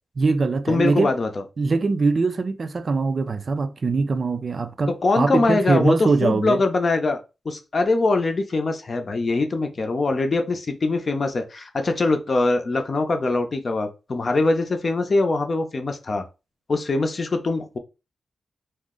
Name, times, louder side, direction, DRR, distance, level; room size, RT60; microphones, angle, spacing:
voice 1, 0.2-1.1 1.6-6.6, right 4 dB, 50° right, 0.3 m, -22 dB
voice 2, 0.7-1.3 5.0-7.2 7.4-16.2 16.7-17.8, left 3 dB, 45° left, 0.6 m, -22 dB
2.5 x 2.1 x 3.6 m
cardioid pair, 75°, 0 cm